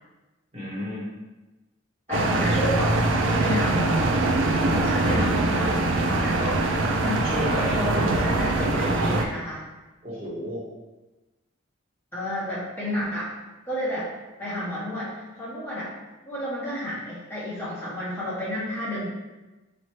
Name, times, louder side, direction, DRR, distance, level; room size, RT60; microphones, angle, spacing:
voice 1, 0.5-1.1 2.1-2.2 4.7-4.9 6.4-6.6 7.2-7.8 10.0-10.6, left 1 dB, 30° right, -6 dB, 1.2 m, -32 dB
voice 2, 2.1-4.2 4.7-5.8 6.1-6.4 7.0-7.2 7.5-9.6 12.1-13.3 13.6-14.1 14.4-15.9 16.2-19.1, left 1 dB, 10° left, -9 dB, 0.9 m, -31 dB
sound 1, 2.1-9.3, right 2 dB, 70° right, 0.4 m, -23 dB
4.3 x 3.2 x 2.9 m, 1.1 s
head